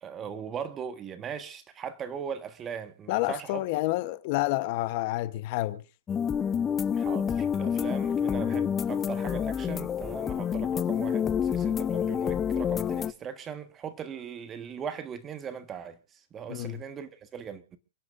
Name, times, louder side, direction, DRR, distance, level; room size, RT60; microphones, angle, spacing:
voice 1, 0.0-3.6 6.9-17.8, right 7 dB, 20° right, 1.5 m, -39 dB
voice 2, 3.1-5.8 16.5-16.8, left 18 dB, 45° left, 1.0 m, -29 dB
sound 1, 6.1-13.1, left 8 dB, 20° left, 0.6 m, -28 dB
29.5 x 10.5 x 2.6 m
hypercardioid pair, 135°, 0 cm